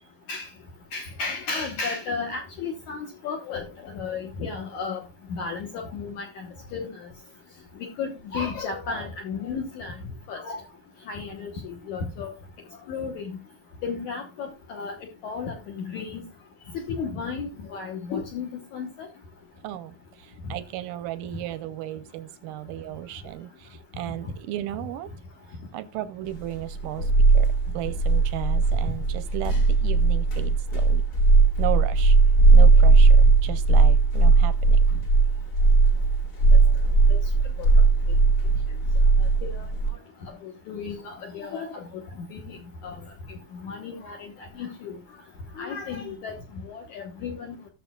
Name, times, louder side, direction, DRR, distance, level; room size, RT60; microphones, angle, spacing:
voice 1, 0.9-5.0 5.3-6.5 6.7-7.1 8.0-9.9 10.3-10.6 11.1-12.3 12.9-13.4 13.8-14.9 15.2-16.2 16.9-18.9 37.6-37.7 39.4-39.7 40.4-41.8 42.3-42.6 42.8-43.0 43.6-44.3 44.6-45.0 45.6-46.4 46.7-47.6, left 5 dB, 65° left, 2.2 m, -33 dB
voice 2, 19.6-25.1 25.7-27.5 27.7-31.0 31.6-32.2 32.5-34.8, right 13 dB, 80° right, 1.9 m, -35 dB
sound 1, 26.4-39.9, right 4 dB, 40° left, 2.5 m, -18 dB
17.0 x 6.8 x 2.3 m
omnidirectional pair, 4.3 m